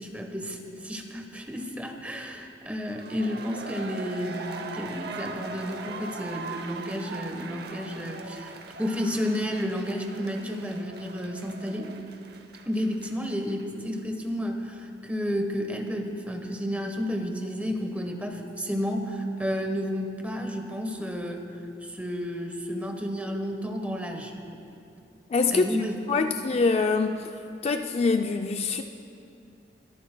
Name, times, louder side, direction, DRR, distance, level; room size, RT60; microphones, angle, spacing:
voice 1, 0.0-11.9 12.6-21.4 21.8-24.3 25.5-26.3, equal, 10° right, 3 dB, 1.0 m, -31 dB
sound 1, 2.8-13.7 13.9-14.0, right 3 dB, 65° right, 0.7 m, -41 dB
voice 2, 25.3-25.7 26.1-27.3 27.6-28.8, left 4 dB, 35° left, 6 dB, 0.3 m, -24 dB
21.5 x 13.5 x 2.2 m, 2.7 s
head